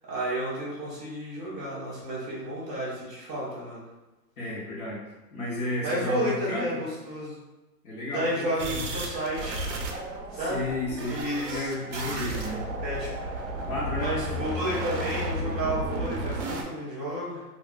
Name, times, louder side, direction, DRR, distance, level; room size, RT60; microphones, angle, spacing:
voice 1, 0.1-3.8 5.8-7.3 8.1-9.6 10.3-10.7 11.1-11.7 12.8-13.2 14.0-17.4, right 1 dB, 10° right, -12 dB, 0.6 m, -31 dB
voice 2, 4.4-5.0 5.3-6.8 7.8-8.8 10.3-12.6 13.7-14.1, left 2 dB, 60° left, -7 dB, 1.1 m, -33 dB
sound 1, 8.6-16.6, right 1 dB, 50° right, 0.5 m, -33 dB
2.3 x 2.3 x 3.8 m, 1.1 s
hypercardioid pair, 165°, 49 cm